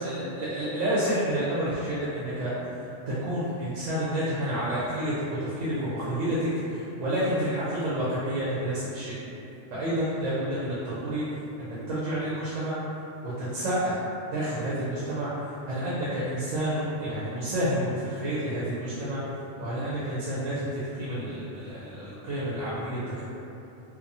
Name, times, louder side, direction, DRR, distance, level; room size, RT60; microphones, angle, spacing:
voice 1, 0.0-2.5 3.1-9.2 9.7-11.2 11.6-12.8 13.2-14.0 14.3-15.3 15.6-19.2 19.6-23.2, right 1 dB, 85° right, -9 dB, 1.0 m, -29 dB
2.9 x 2.1 x 2.6 m, 2.9 s
omnidirectional pair, 1.3 m